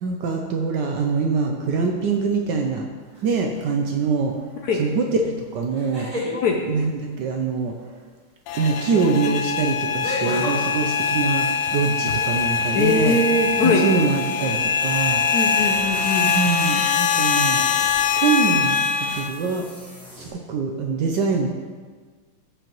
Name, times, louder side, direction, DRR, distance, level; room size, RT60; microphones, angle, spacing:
voice 1, 0.0-2.8 3.2-4.3 4.8-6.1 6.7-7.7 8.6-11.5 11.7-13.2 13.6-15.2 16.2-17.6 18.2-18.8 19.1-19.6 20.3-21.5, right 5 dB, 70° right, 2 dB, 1.1 m, -23 dB
sound 1, 3.1-3.6 5.7-6.4 8.6-8.7 10.0-10.6, left 1 dB, 15° right, 2.5 m, -29 dB
sound 2, 8.5-19.3, left 6 dB, 90° left, 1.6 m, -23 dB
sound 3, 12.4-20.3, equal, 5° left, 0.8 m, -42 dB
voice 2, 12.7-13.8 15.3-16.3, left 2 dB, 75° left, 2 dB, 0.9 m, -21 dB
15.0 x 5.0 x 3.0 m, 1.5 s
omnidirectional pair, 2.4 m